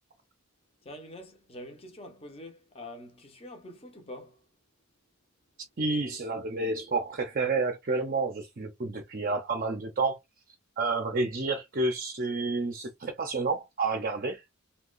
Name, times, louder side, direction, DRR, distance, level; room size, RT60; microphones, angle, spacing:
voice 1, 0.8-4.4, left 1 dB, 25° left, 0.7 m, -45 dB
voice 2, 5.8-10.2 10.8-14.4, right 3 dB, 40° right, 0.5 m, -30 dB
2.8 x 2.3 x 3.8 m
head